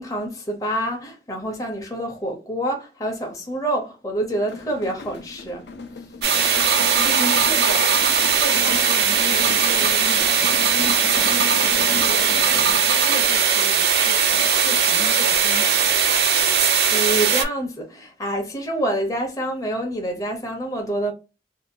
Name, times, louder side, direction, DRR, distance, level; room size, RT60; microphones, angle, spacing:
voice 1, 0.0-5.6 16.5-21.1, right 1 dB, 20° left, 0.6 m, -27 dB
sound 1, 4.3-13.0, left 4 dB, 70° left, 0.4 m, -37 dB
sound 2, 6.2-17.4, right 6 dB, 65° right, 0.5 m, -19 dB
voice 2, 7.0-7.9 8.4-15.9, left 2 dB, 90° left, 0.9 m, -34 dB
2.6 x 2.2 x 2.6 m
head